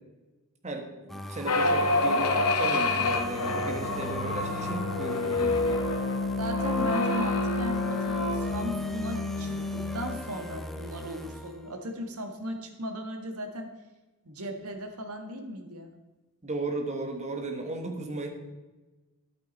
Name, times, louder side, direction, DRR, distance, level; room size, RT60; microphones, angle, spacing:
voice 1, 0.6-5.9 16.4-18.3, right 2 dB, 30° right, 4 dB, 1.4 m, -35 dB
sound 1, 1.1-11.9, equal, ahead, 0.6 m, -40 dB
sound 2, 1.4-10.2, left 2 dB, 75° left, 1.0 m, -28 dB
voice 2, 6.4-13.7 14.2-15.9, equal, 75° right, 4 dB, 1.5 m, -36 dB
10.5 x 8.8 x 4.1 m, 1.2 s
head